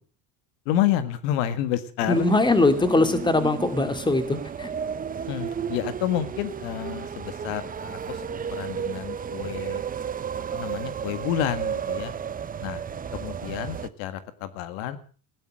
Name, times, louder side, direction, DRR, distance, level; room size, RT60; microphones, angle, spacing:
voice 1, 0.7-2.3 5.3-9.8 10.5-12.1 12.6-12.8 13.1-15.0, left 11 dB, 80° left, 12 dB, 1.8 m, -29 dB
sound 1, 2.0-13.9, right 7 dB, 20° right, 0.8 m, -33 dB
voice 2, 2.1-4.7, left 2 dB, 10° left, 9 dB, 2.4 m, -21 dB
16.0 x 11.5 x 7.5 m, 0.42 s
supercardioid pair, 115°, 38 cm